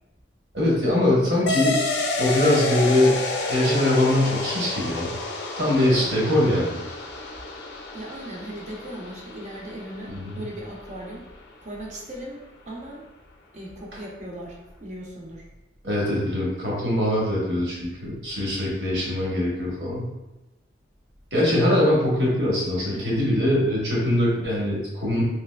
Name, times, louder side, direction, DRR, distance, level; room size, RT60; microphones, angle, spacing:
voice 1, 0.5-1.8 2.2-3.2 3.5-5.1 5.6-6.7 10.1-10.4 15.8-20.1 21.3-25.2, left 1 dB, 65° right, -5 dB, 1.1 m, -22 dB
sound 1, 1.5-10.5, left 2 dB, 60° left, 0.4 m, -30 dB
voice 2, 7.9-11.2 11.6-13.1 13.5-15.5 22.8-23.2, right 1 dB, 40° right, -2 dB, 0.6 m, -38 dB
3.3 x 2.9 x 2.2 m, 1.0 s
head